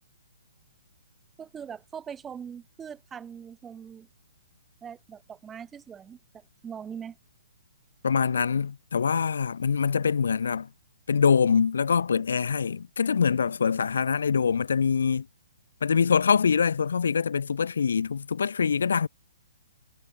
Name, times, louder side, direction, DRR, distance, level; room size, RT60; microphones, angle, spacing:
voice 1, 1.4-4.1 4.8-7.2, right 7 dB, 15° right, 1.6 m, -41 dB
voice 2, 8.0-10.7 11.1-15.3 15.8-19.1, left 6 dB, 80° left, 0.6 m, -24 dB
hypercardioid pair, 150°, 0 cm